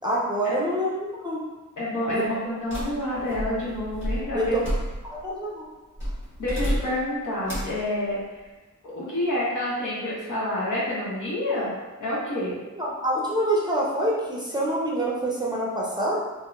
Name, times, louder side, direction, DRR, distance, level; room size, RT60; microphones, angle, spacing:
voice 1, 0.0-1.4 2.1-2.2 4.3-4.6 5.0-5.7 12.8-16.2, right 1 dB, 15° right, -5 dB, 0.5 m, -26 dB
voice 2, 1.8-4.6 6.4-8.2 8.8-11.7 12.0-12.6, left 1 dB, 70° left, -7 dB, 0.9 m, -28 dB
sound 1, 2.7-5.3 6.0-7.1 7.5-7.8, equal, 40° left, 1.3 m, -31 dB
2.8 x 2.0 x 2.4 m, 1.2 s
cardioid pair, 70°, 32 cm